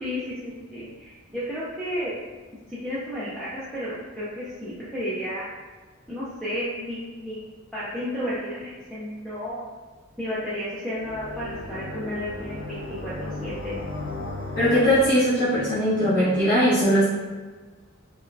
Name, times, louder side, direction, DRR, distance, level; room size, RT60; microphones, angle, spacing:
voice 1, 0.0-2.2 2.7-5.5 6.1-7.5 7.7-9.7 10.2-13.8, equal, 5° left, -11 dB, 0.5 m, -32 dB
sound 1, 11.0-15.1, left 2 dB, 60° left, 0.7 m, -35 dB
voice 2, 14.5-17.0, equal, 40° left, -17 dB, 1.3 m, -20 dB
3.9 x 2.2 x 2.6 m, 1.4 s
head